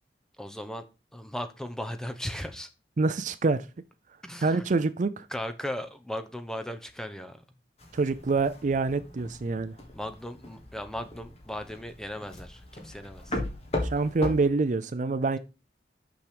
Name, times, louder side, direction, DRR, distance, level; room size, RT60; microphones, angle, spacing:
voice 1, 0.4-2.7 4.2-4.6 5.3-7.4 9.9-13.4, left 1 dB, 5° left, 0.7 m, -37 dB
voice 2, 3.0-3.6 4.4-5.3 7.9-9.7 13.8-15.4, right 3 dB, 45° right, 0.4 m, -26 dB
sound 1, 7.8-14.5, left 1 dB, 35° left, 1.7 m, -37 dB
6.0 x 5.9 x 5.0 m
head